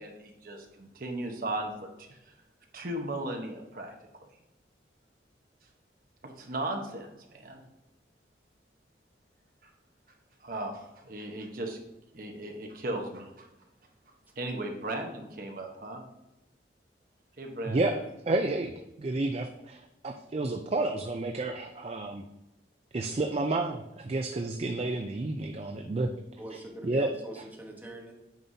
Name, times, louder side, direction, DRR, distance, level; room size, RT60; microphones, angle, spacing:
voice 1, 0.0-2.2 2.7-3.9 6.2-7.6 9.6-9.7 10.4-11.8 12.1-13.5 14.4-16.0 17.4-17.8, right 1 dB, 50° right, 3 dB, 1.0 m, -36 dB
voice 2, 17.7-18.0 18.3-22.2 22.9-26.1 26.8-27.1, right 2 dB, 35° right, 5 dB, 0.4 m, -30 dB
voice 3, 26.4-28.1, right 1 dB, 10° right, -2 dB, 1.2 m, -43 dB
9.1 x 5.4 x 2.8 m, 0.91 s
head